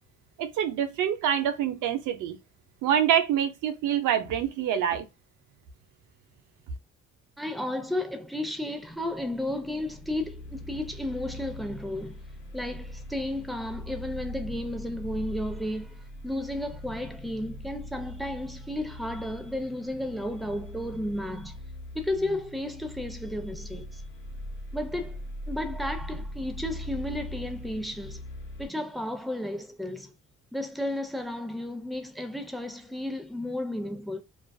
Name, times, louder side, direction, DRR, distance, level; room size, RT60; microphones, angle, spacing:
voice 1, 0.4-2.4 2.8-5.0, right 9 dB, 85° right, 0.6 m, -26 dB
voice 2, 7.4-12.2 12.5-21.6 21.9-24.0 24.7-25.2 25.5-28.2 28.6-30.1 30.5-34.2, left 1 dB, ahead, 0.4 m, -33 dB
sound 1, 8.8-28.7, left 1 dB, 40° left, 1.0 m, -41 dB
2.4 x 2.3 x 2.3 m
cardioid pair, 90°, 30 cm